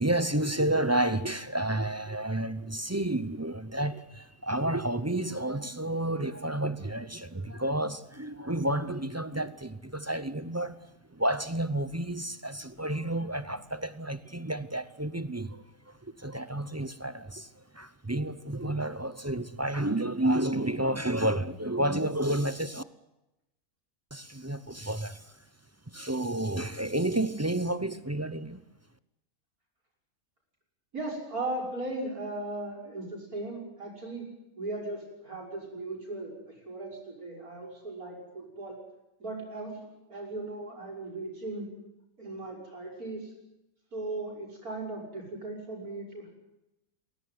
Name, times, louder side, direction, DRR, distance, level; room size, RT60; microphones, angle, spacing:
voice 1, 0.0-10.8 11.1-22.8 24.1-25.4 25.9-28.6, right 1 dB, 15° right, 0.6 m, -31 dB
voice 2, 30.9-34.3 34.6-36.3 36.7-38.8 39.2-39.8 40.1-41.7 42.2-43.3 43.9-46.3, right 2 dB, 80° right, 7.2 m, -37 dB
21.0 x 18.0 x 9.5 m
omnidirectional pair, 1.5 m